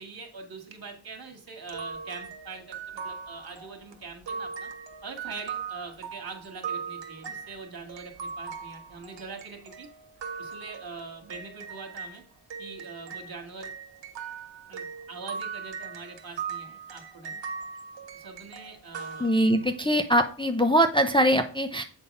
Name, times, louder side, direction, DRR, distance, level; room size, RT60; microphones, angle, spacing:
voice 1, 0.0-4.7 5.0-9.9 10.4-12.2 12.6-13.7 14.7-17.4 18.1-19.3, right 4 dB, 55° right, 2 dB, 2.0 m, -43 dB
sound 1, 1.7-12.2 12.5-19.9, right 6 dB, 70° right, 1.1 m, -39 dB
voice 2, 19.2-21.8, equal, 10° left, 5 dB, 0.5 m, -22 dB
8.2 x 3.5 x 5.4 m, 0.41 s
wide cardioid pair, 105°, 44 cm